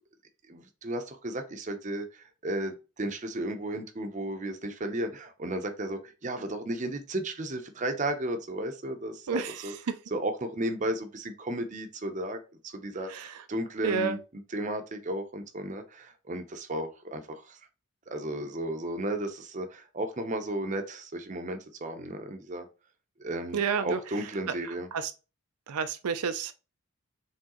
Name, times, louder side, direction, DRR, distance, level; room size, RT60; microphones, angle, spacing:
voice 1, 0.5-9.7 10.1-17.6 18.1-22.7 23.2-24.9, right 1 dB, 35° right, 0.6 m, -34 dB
voice 2, 13.8-14.2 23.5-24.0 24.9-25.1 25.7-26.5, right 6 dB, 90° right, 0.5 m, -29 dB
4.6 x 3.5 x 3.0 m
head